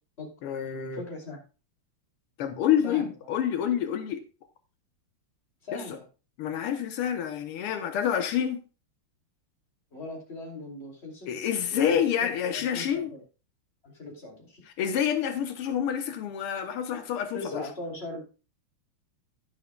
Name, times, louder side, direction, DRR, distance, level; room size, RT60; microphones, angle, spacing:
voice 1, 0.4-1.0 2.4-4.2 5.7-6.0 6.4-8.6 11.3-13.1 14.8-17.7, left 9 dB, 90° left, 7 dB, 1.9 m, -28 dB
voice 2, 0.9-1.4 2.8-3.1 5.6-6.0 9.9-11.3 11.7-13.2 13.8-14.6 17.3-18.2, left 2 dB, 30° left, -1 dB, 3.1 m, -40 dB
11.0 x 11.0 x 2.3 m, 0.32 s
omnidirectional pair, 2.4 m